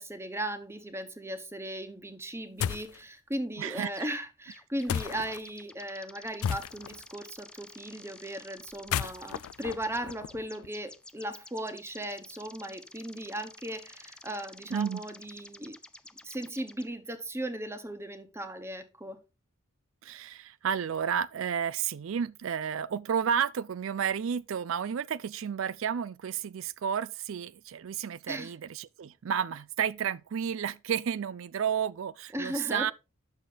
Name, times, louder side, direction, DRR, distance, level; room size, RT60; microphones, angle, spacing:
voice 1, 0.0-15.8 16.2-19.2 28.3-28.5 32.3-32.9, right 1 dB, 10° right, 1.0 m, -37 dB
sound 1, 2.6-3.0 4.9-5.4 6.4-7.0 8.7-10.7, left 8 dB, 85° left, 0.3 m, -33 dB
voice 2, 3.6-4.1 14.7-15.0 20.0-32.9, right 8 dB, 65° right, 0.4 m, -31 dB
sound 2, 4.0-4.2 4.5-16.9, left 2 dB, 5° left, 0.4 m, -51 dB
9.4 x 6.6 x 3.9 m
head